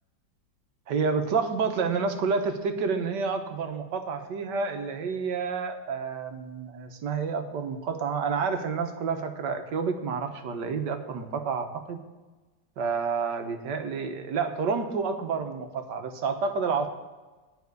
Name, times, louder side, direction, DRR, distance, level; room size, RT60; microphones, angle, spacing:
voice 1, 0.9-12.0 12.8-16.9, right 5 dB, 70° right, 6 dB, 1.7 m, -29 dB
10.5 x 5.5 x 8.1 m, 1.2 s
omnidirectional pair, 2.0 m